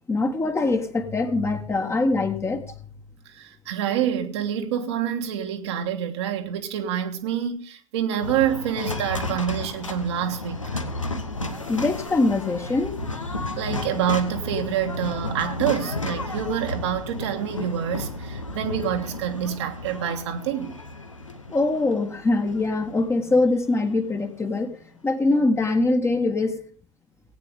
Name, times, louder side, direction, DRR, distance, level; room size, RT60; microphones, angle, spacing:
voice 1, 0.1-2.6 11.7-13.0 21.5-24.8 25.0-26.6, left 2 dB, 15° left, 1.4 m, -23 dB
voice 2, 3.4-10.6 13.6-20.7, right 9 dB, 60° right, 1.5 m, -27 dB
sound 1, 8.2-24.4, left 2 dB, 85° left, 1.1 m, -33 dB
18.0 x 9.0 x 3.5 m
figure-of-eight pair, 75°, 16 cm